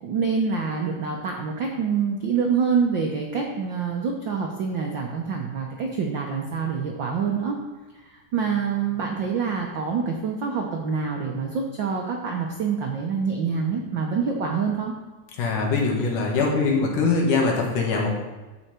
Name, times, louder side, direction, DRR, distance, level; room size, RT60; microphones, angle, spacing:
voice 1, 0.0-7.6 8.0-14.9, right 5 dB, 80° right, 1 dB, 1.0 m, -26 dB
voice 2, 15.4-18.1, left 4 dB, 85° left, -1 dB, 3.4 m, -22 dB
14.5 x 5.8 x 4.4 m, 1.2 s
omnidirectional pair, 3.5 m